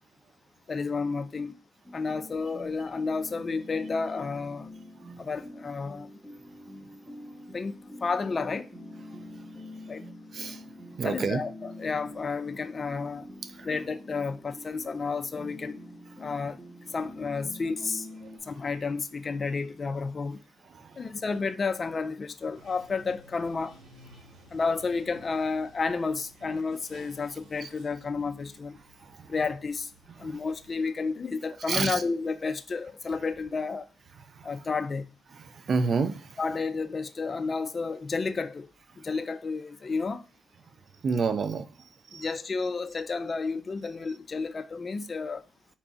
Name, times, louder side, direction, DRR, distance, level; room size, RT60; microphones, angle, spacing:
voice 1, 0.7-1.6 1.9-4.7 5.2-6.1 7.5-8.7 9.9-10.0 11.0-13.3 13.6-15.8 16.2-16.6 16.9-18.1 18.4-20.4 21.0-23.7 24.5-28.8 29.3-29.9 30.2-33.9 34.4-35.1 36.4-38.7 39.0-40.2 42.1-45.4, left 4 dB, 35° left, 0.4 m, -31 dB
sound 1, 1.8-18.4, left 1 dB, 5° right, 0.9 m, -45 dB
voice 2, 11.0-11.4 30.2-30.4 31.7-32.0 35.7-36.3 41.0-41.7 42.1-42.3, right 5 dB, 50° right, 0.4 m, -27 dB
Bathtub (filling or washing), 22.5-30.7, equal, 75° right, 1.1 m, -55 dB
4.3 x 2.3 x 3.8 m
cardioid pair, 90°, 0 cm